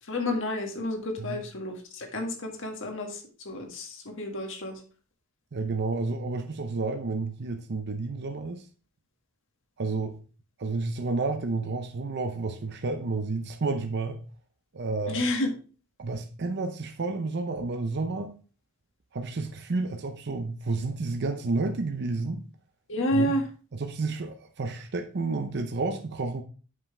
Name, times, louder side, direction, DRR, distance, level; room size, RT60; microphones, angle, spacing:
voice 1, 0.0-4.8 15.1-15.5 22.9-23.4, left 1 dB, 65° left, 1.7 m, -30 dB
voice 2, 5.5-8.7 9.8-10.2 10.6-14.2 14.7-15.3 16.0-18.4 19.1-22.5 23.1-23.3 23.8-26.4, right 3 dB, 55° right, 0.7 m, -30 dB
7.5 x 5.6 x 3.2 m
head